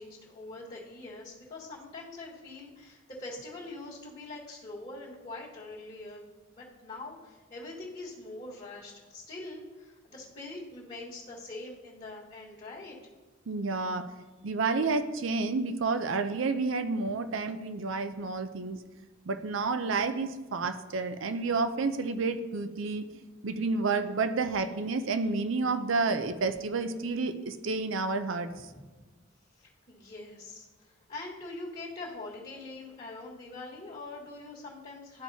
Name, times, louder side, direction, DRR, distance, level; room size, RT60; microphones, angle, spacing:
voice 1, 0.0-13.0 29.6-35.2, left 2 dB, 35° left, -7 dB, 1.5 m, -43 dB
voice 2, 13.5-14.1 14.4-18.8 19.3-28.7, right 4 dB, 65° right, 10 dB, 0.5 m, -30 dB
12.5 x 4.6 x 2.7 m, 1.3 s
head